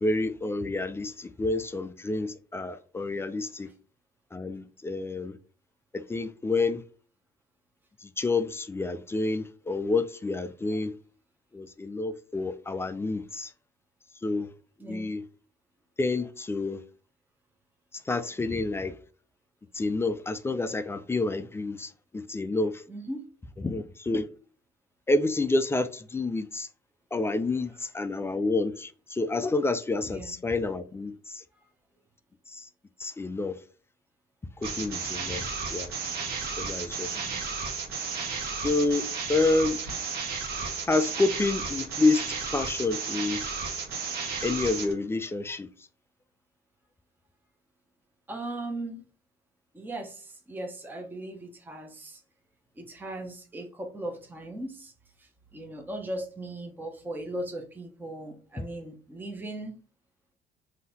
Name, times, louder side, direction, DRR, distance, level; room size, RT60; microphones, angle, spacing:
voice 1, 0.0-3.7 4.3-5.4 5.9-6.8 8.0-10.9 11.5-13.5 14.2-14.5 14.8-15.2 16.0-16.8 18.1-19.0 19.7-22.8 23.6-24.3 25.1-26.7 27.1-31.4 32.5-32.7 33.0-33.6 34.6-35.4 35.7-35.9 36.6-37.1 38.6-39.8 40.9-43.4 44.4-45.7, left 3 dB, 15° left, 0.4 m, -28 dB
voice 2, 14.8-15.1 22.9-23.2 30.0-30.4 37.1-37.4 48.3-49.0 49.7-52.2 52.8-54.9 55.2-59.8, right 1 dB, 10° right, 0.8 m, -38 dB
sound 1, 34.6-44.9, right 5 dB, 70° right, 1.2 m, -33 dB
3.8 x 2.7 x 4.1 m
cardioid pair, 110°, 17 cm